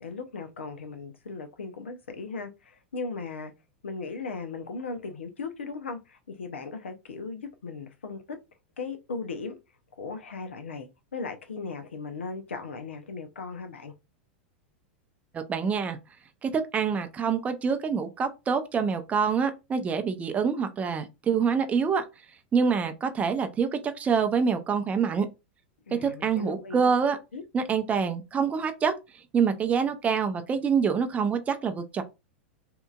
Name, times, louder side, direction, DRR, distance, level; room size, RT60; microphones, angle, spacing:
voice 1, 0.0-3.5 3.8-8.4 8.8-9.6 10.0-13.9 25.9-26.9 27.3-27.4, left 4 dB, 90° left, 0.6 m, -37 dB
voice 2, 15.3-16.0 16.4-22.1 22.5-25.3 25.9-27.2 27.5-28.9 29.3-32.0, right 6 dB, 20° right, 0.5 m, -26 dB
2.8 x 2.5 x 2.3 m
hypercardioid pair, 105°, 6 cm